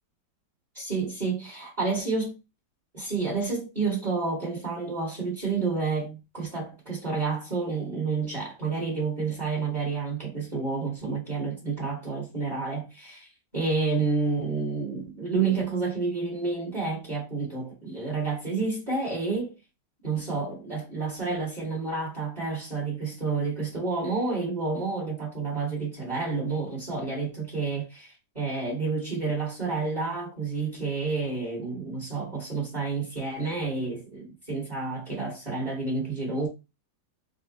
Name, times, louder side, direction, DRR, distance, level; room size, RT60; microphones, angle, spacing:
voice 1, 0.7-2.4 2.9-13.3 13.5-19.5 20.0-36.5, right 4 dB, 25° right, 1.4 m, -29 dB
3.8 x 2.2 x 4.0 m
omnidirectional pair, 2.0 m